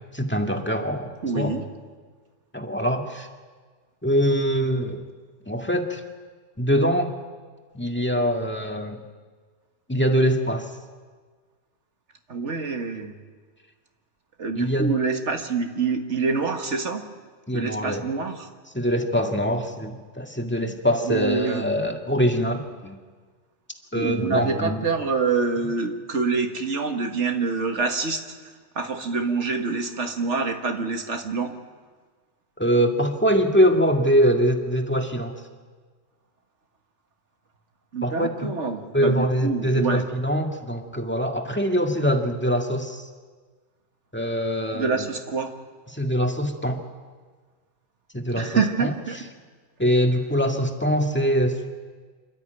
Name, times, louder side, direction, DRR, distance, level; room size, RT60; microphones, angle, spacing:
voice 1, 0.1-1.5 2.5-3.3 4.0-5.0 5.5-6.0 6.6-7.1 7.7-9.0 9.9-10.7 14.5-14.9 17.5-18.1 18.7-23.0 23.9-24.8 32.6-35.3 38.0-38.5 38.9-43.1 44.1-45.0 45.9-46.8 48.1-48.9 49.8-51.7, equal, 10° left, 2 dB, 1.9 m, -23 dB
voice 2, 1.2-1.6 12.3-13.1 14.4-17.0 17.5-18.5 21.0-21.6 23.9-28.3 28.8-31.5 37.9-40.1 44.7-45.5 48.4-49.2, right 4 dB, 75° right, 5 dB, 2.0 m, -26 dB
27.5 x 13.0 x 9.3 m, 1.5 s
omnidirectional pair, 1.2 m